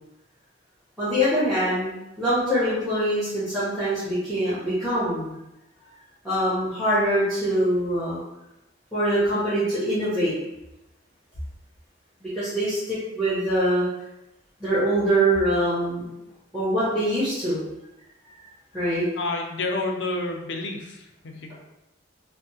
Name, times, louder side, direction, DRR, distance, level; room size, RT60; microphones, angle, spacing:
voice 1, 1.0-5.4 6.2-8.2 8.9-10.3 12.2-13.8 14.6-16.1 16.5-17.6 18.7-19.1, right 1 dB, ahead, -14 dB, 1.0 m, -24 dB
voice 2, 19.2-21.5, left 2 dB, 75° left, 3 dB, 0.5 m, -29 dB
3.3 x 2.1 x 2.8 m, 0.92 s
head